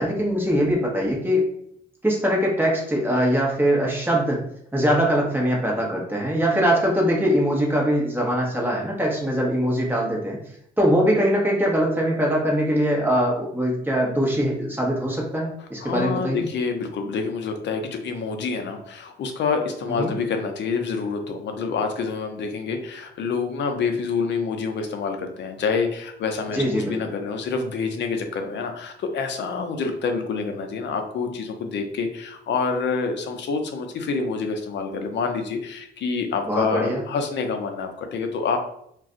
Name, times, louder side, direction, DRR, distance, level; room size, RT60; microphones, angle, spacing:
voice 1, 0.0-1.5 2.0-4.4 4.7-10.4 10.8-16.5 20.0-20.1 26.5-27.0 36.5-37.0, equal, 10° right, -2 dB, 1.0 m, -22 dB
voice 2, 15.8-38.6, left 5 dB, 65° left, 5 dB, 0.6 m, -27 dB
2.5 x 2.2 x 3.8 m, 0.70 s
cardioid pair, 90°, 20 cm